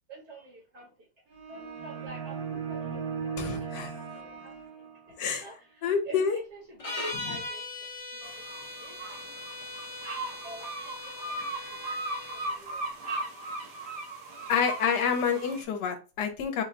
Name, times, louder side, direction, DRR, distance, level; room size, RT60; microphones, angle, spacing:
voice 1, 0.1-1.1 1.5-4.6 5.1-8.4 8.8-8.9 10.4-12.0 12.3-12.9, right 2 dB, 50° right, 1.0 m, -48 dB
sound 1, 1.3-5.3, right 6 dB, 90° right, 1.7 m, -37 dB
voice 2, 3.4-3.9 5.2-5.4 5.8-6.4 7.1-7.4 14.5-16.6, left 6 dB, 70° left, 1.2 m, -28 dB
sound 2, 6.8-12.6, left 2 dB, 35° left, 0.5 m, -39 dB
sound 3, 8.2-15.6, right 2 dB, 70° right, 1.6 m, -38 dB
4.2 x 2.2 x 3.6 m
omnidirectional pair, 1.9 m